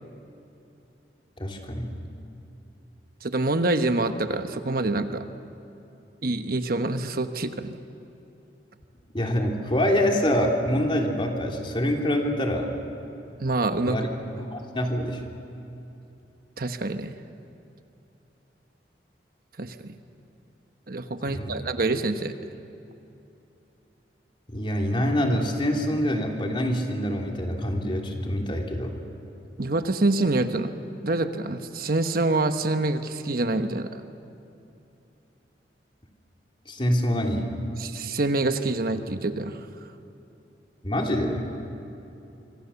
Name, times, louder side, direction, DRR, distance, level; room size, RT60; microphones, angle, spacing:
voice 1, 1.4-1.9 9.1-12.7 13.8-14.1 14.4-15.2 21.2-21.5 24.5-28.9 36.6-37.5 40.8-41.5, equal, 30° left, 1 dB, 3.0 m, -25 dB
voice 2, 3.2-5.3 6.2-7.8 13.4-14.0 16.6-17.1 19.6-19.9 20.9-22.3 29.6-30.7 31.0-34.0 37.8-39.6, right 2 dB, 55° right, 8 dB, 1.1 m, -26 dB
26.0 x 25.5 x 7.1 m, 2.8 s
head